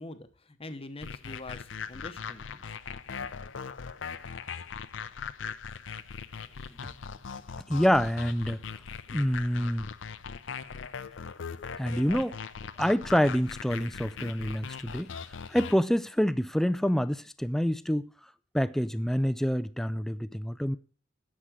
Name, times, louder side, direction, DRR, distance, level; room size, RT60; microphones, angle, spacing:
voice 1, 0.0-2.6 3.2-3.3, left 2 dB, 30° left, 0.9 m, -44 dB
sound 1, 1.0-15.8, left 6 dB, 75° left, 0.6 m, -40 dB
voice 2, 7.7-8.6 9.1-9.9 11.8-12.4 12.8-15.1 15.5-18.1 18.5-20.8, equal, ahead, 0.4 m, -27 dB
10.0 x 7.3 x 6.2 m
head